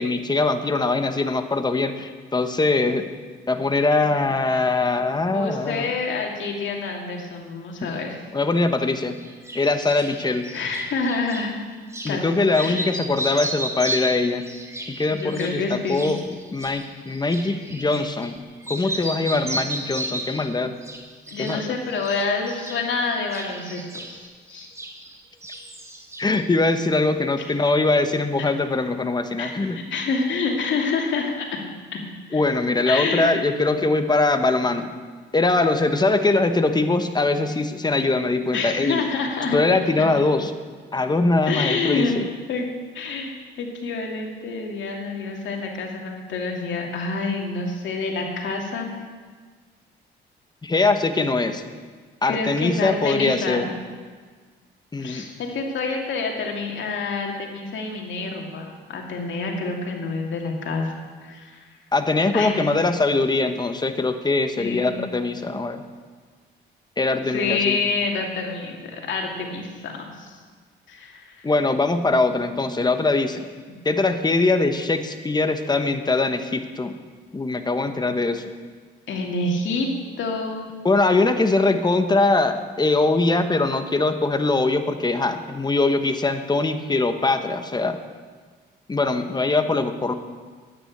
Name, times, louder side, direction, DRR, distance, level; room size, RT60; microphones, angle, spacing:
voice 1, 0.0-3.0 3.5-5.9 7.8-8.0 8.3-9.2 9.5-10.5 12.0-14.4 14.9-16.2 16.5-18.4 18.7-20.7 21.4-21.7 26.2-29.8 32.3-34.9 35.3-39.0 39.5-40.5 40.9-42.3 50.6-51.6 52.2-53.7 54.9-55.2 61.9-65.8 67.0-67.8 71.4-73.4 73.8-76.9 77.3-78.5 80.8-88.0 88.9-90.1, left 3 dB, 20° left, 8 dB, 1.1 m, -22 dB
voice 2, 5.3-8.2 10.5-11.5 12.1-12.2 12.6-12.9 15.1-16.0 21.3-24.7 29.4-31.5 31.9-32.0 32.3-32.4 32.9-33.4 38.5-39.6 41.4-42.2 42.5-42.7 42.9-49.0 52.2-53.7 55.0-61.6 62.3-62.7 64.6-64.9 67.3-70.3 70.9-71.5 79.1-79.9 80.2-80.7, left 4 dB, 70° left, 1 dB, 2.6 m, -27 dB
sound 1, 9.2-11.5 11.9-12.2 12.5-18.4 18.6-20.5 20.8-21.6 21.9-25.2 25.4-26.4, right 1 dB, 15° right, 2.1 m, -34 dB
9.9 x 9.7 x 8.6 m, 1.5 s
cardioid pair, 90°, 20 cm